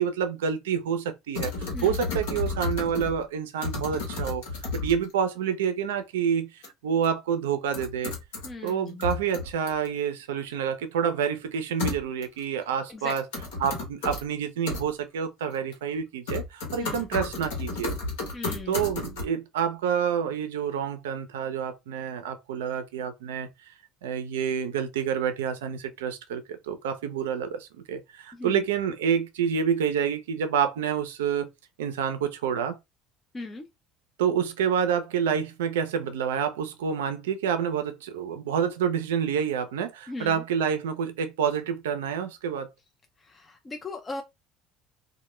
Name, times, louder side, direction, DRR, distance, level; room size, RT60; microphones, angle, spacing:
voice 1, 0.0-4.4 4.7-8.1 8.6-13.2 13.6-17.9 18.7-23.5 24.0-31.5 31.8-32.8 34.2-42.7, right 7 dB, 90° right, 0.4 m, -28 dB
sound 1, 1.3-3.2 3.6-5.1 6.6-6.7 7.0-7.1 7.7-8.7 9.0-9.9 11.8-12.4 13.1-14.2 14.7-14.8 15.5-16.0 16.3-19.2, left 3 dB, 85° left, 1.0 m, -32 dB
voice 2, 8.4-9.1 12.9-13.1 16.8-17.1 18.3-18.9 28.3-28.6 33.3-33.7 40.1-40.4 43.2-44.2, left 3 dB, 25° left, 0.5 m, -38 dB
2.1 x 2.1 x 3.0 m
supercardioid pair, 80°, 0 cm